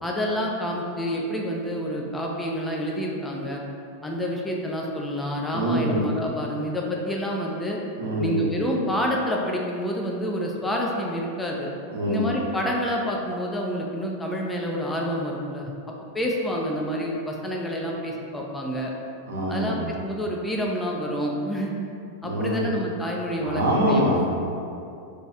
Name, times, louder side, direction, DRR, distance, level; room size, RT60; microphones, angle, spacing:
voice 1, 0.0-3.6 4.0-7.8 8.2-11.7 12.1-15.7 16.1-18.9 19.5-21.7 22.2-24.1, equal, 10° left, -2 dB, 0.5 m, -28 dB
voice 2, 5.5-6.0 8.0-8.4 11.9-12.3 19.3-19.9 22.2-22.6 23.4-24.2, right 1 dB, 65° right, -5 dB, 0.8 m, -24 dB
3.0 x 2.8 x 3.5 m, 2.6 s
figure-of-eight pair, 90°, 0 cm